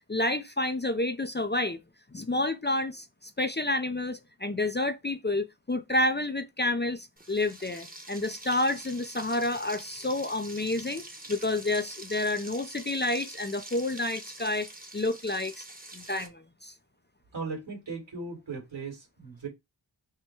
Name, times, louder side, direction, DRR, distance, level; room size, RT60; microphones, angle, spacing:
voice 1, 0.1-1.8 2.1-11.0 11.3-14.7 14.9-15.6 15.9-16.7, left 2 dB, 20° left, 0.5 m, -29 dB
Frying (food), 7.2-16.3, right 2 dB, 15° right, 1.1 m, -45 dB
voice 2, 17.3-19.5, right 4 dB, 60° right, 2.5 m, -37 dB
4.4 x 2.2 x 4.6 m
cardioid pair, 40°, 50 cm